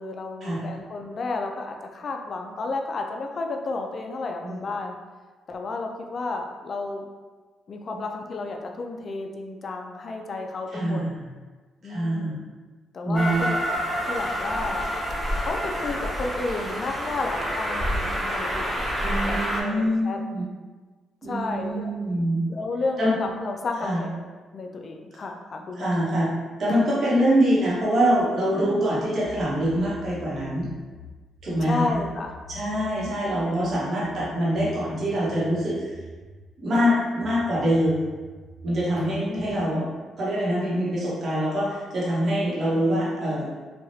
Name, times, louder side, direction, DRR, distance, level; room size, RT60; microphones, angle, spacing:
voice 1, 0.0-4.9 5.5-7.0 7.7-11.0 11.8-12.4 12.9-13.6 14.0-14.8 15.4-18.7 19.2-20.2 21.2-21.9 22.5-24.3 24.5-26.0 28.5-28.9 31.6-32.4 33.1-33.4 39.3-39.7, left 3 dB, 45° left, 3 dB, 0.4 m, -32 dB
voice 2, 10.7-11.2 11.8-12.4 13.0-13.5 19.0-20.4 21.2-22.5 23.0-23.1 23.8-24.0 25.8-26.3 26.6-30.7 31.4-32.0 32.5-35.9 36.6-38.1 38.6-39.8 40.2-43.5, equal, 50° right, -7 dB, 1.0 m, -24 dB
Train, 13.1-19.6, equal, 15° right, 0.6 m, -28 dB
sound 1, 29.2-36.5 37.2-39.7, left 1 dB, 70° right, 0.4 m, -45 dB
3.3 x 2.3 x 2.7 m, 1.4 s
cardioid pair, 90°, 0 cm